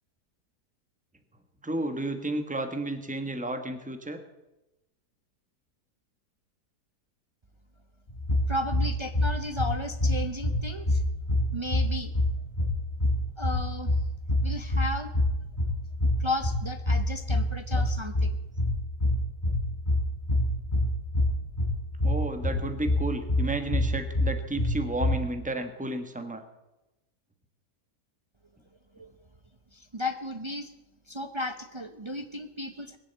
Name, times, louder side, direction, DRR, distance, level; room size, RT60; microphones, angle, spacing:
voice 1, 1.6-4.2 22.0-26.4, right 1 dB, 5° right, 7 dB, 1.1 m, -32 dB
sound 1, 8.1-25.2, left 1 dB, 30° left, 3.6 m, -27 dB
voice 2, 8.5-11.0 11.5-12.1 13.4-13.9 14.4-15.1 16.2-18.4 28.9-29.1 29.7-30.7 31.1-33.0, left 1 dB, 40° right, 7 dB, 0.4 m, -34 dB
21.0 x 7.6 x 8.0 m, 0.98 s
omnidirectional pair, 1.8 m